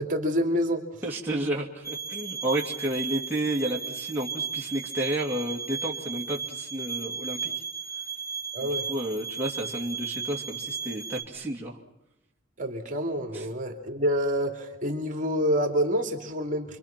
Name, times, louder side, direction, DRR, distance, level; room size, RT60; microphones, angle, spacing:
voice 1, 0.0-0.8 8.5-8.9 12.6-16.8, equal, 40° right, 4 dB, 2.8 m, -27 dB
voice 2, 1.0-7.5 8.6-11.8 13.3-13.4, right 1 dB, 10° right, -3 dB, 2.5 m, -31 dB
sound 1, 1.8-11.2, right 6 dB, 15° left, 2.3 m, -35 dB
28.5 x 23.5 x 6.0 m, 0.87 s
head